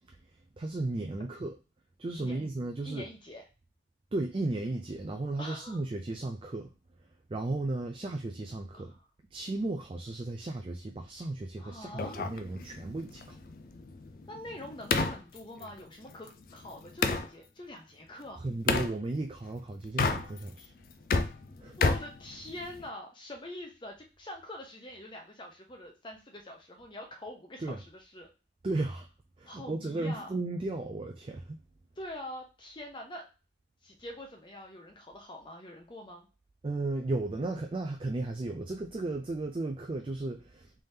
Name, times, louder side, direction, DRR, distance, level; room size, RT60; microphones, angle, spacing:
voice 1, 0.6-1.5 2.0-3.1 4.1-6.7 7.3-8.9 9.3-13.4 18.4-20.7 21.6-21.8 27.6-27.8 28.6-29.1 29.4-31.6 36.6-40.7, right 2 dB, 30° right, 4 dB, 0.3 m, -35 dB
voice 2, 2.2-2.5 2.8-3.4 5.4-5.8 8.7-9.0 11.6-12.3 14.3-18.4 21.8-28.3 29.5-30.3 32.0-33.3 33.8-36.3, left 1 dB, 25° left, 2 dB, 0.7 m, -44 dB
sound 1, 12.0-17.3 18.7-18.9 19.8-20.6 20.9-22.9, left 4 dB, 50° left, 0.4 m, -31 dB
3.4 x 3.3 x 2.7 m, 0.31 s
head